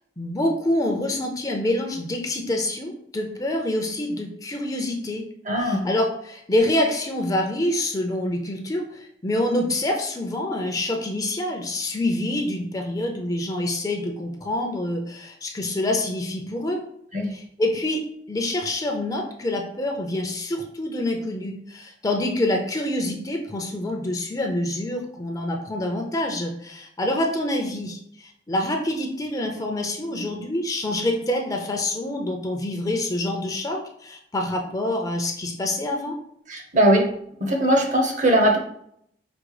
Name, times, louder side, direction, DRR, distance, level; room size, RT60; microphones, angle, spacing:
voice 1, 0.2-5.2 5.6-16.8 17.3-18.0 18.3-36.2, left 1 dB, 20° left, 2 dB, 0.6 m, -26 dB
voice 2, 5.5-5.8 17.1-17.3 36.5-37.1 37.4-38.6, right 1 dB, 45° right, 2 dB, 0.9 m, -20 dB
5.1 x 2.1 x 4.8 m, 0.70 s
head